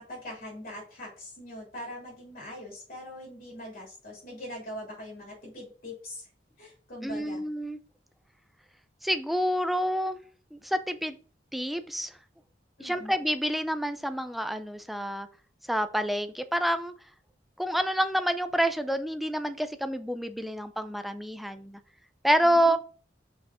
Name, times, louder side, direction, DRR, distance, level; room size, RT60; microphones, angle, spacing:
voice 1, 0.0-6.3 6.6-7.4 12.8-13.2 22.4-22.8, left 1 dB, 50° left, -3 dB, 3.4 m, -42 dB
voice 2, 7.0-7.8 9.0-10.2 10.5-11.2 11.5-12.1 12.8-15.3 15.7-16.9 17.6-21.8 22.2-22.8, equal, ahead, 9 dB, 0.5 m, -28 dB
5.9 x 5.1 x 3.8 m, 0.39 s
head